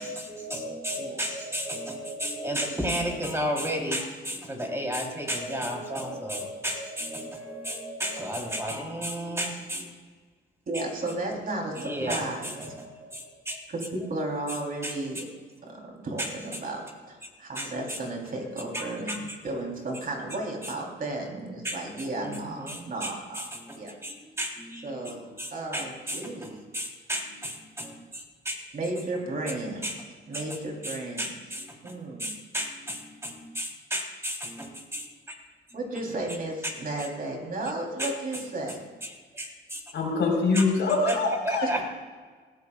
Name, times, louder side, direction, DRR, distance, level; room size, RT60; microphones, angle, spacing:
voice 1, 0.0-9.9 10.7-11.0 11.5-13.6 14.5-14.6 14.8-15.2 16.2-16.6 17.6-18.0 18.5-19.4 20.6-20.7 21.6-28.6 29.5-29.6 29.8-30.0 30.3-35.1 36.6-36.7 37.0-37.1 38.0-38.4 39.0-39.8 40.5-40.6 41.1-41.8, equal, 15° right, 0 dB, 3.6 m, -34 dB
voice 2, 10.7-12.6 13.7-15.2 15.6-23.4 23.8-23.9 24.8-26.5 28.7-29.9 30.3-31.3 31.8-32.3 35.7-38.8 41.6-41.8, right 2 dB, 45° right, 0 dB, 3.6 m, -34 dB
voice 3, 39.9-41.7, left 3 dB, 65° left, -1 dB, 4.2 m, -24 dB
19.5 x 14.5 x 2.4 m, 1.5 s
cardioid pair, 90°, 20 cm